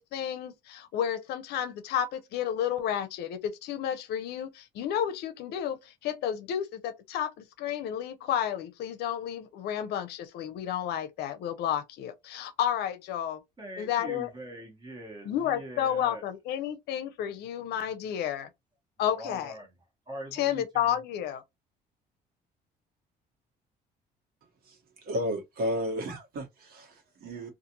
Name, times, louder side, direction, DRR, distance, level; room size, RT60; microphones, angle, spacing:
voice 1, 0.0-13.4 13.8-14.3 15.3-18.5 19.0-19.5 20.3-21.4, left 10 dB, 75° left, 0.5 m, -31 dB
voice 2, 13.6-16.2 19.1-21.0, right 1 dB, 25° right, 1.3 m, -43 dB
voice 3, 24.6-27.5, equal, 65° right, 1.2 m, -33 dB
2.5 x 2.4 x 2.8 m
cardioid pair, 110°, 17 cm